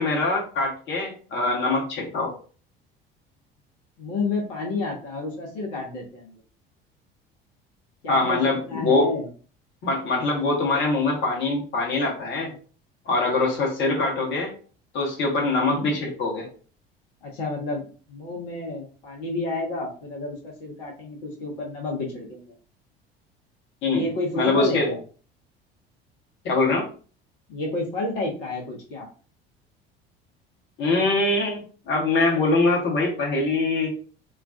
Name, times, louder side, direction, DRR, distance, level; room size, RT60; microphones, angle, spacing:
voice 1, 0.0-2.3 8.1-9.1 9.8-12.5 13.1-14.5 14.9-16.5 23.8-24.1 24.4-24.9 26.4-26.9 30.8-34.0, left 3 dB, 40° left, -1 dB, 0.9 m, -23 dB
voice 2, 4.0-6.4 8.0-8.4 8.7-9.3 15.6-15.9 17.2-22.5 23.9-25.0 27.5-29.1, left 2 dB, 60° left, -1 dB, 0.7 m, -30 dB
2.3 x 2.2 x 2.4 m, 0.39 s
figure-of-eight pair, 60°, 30 cm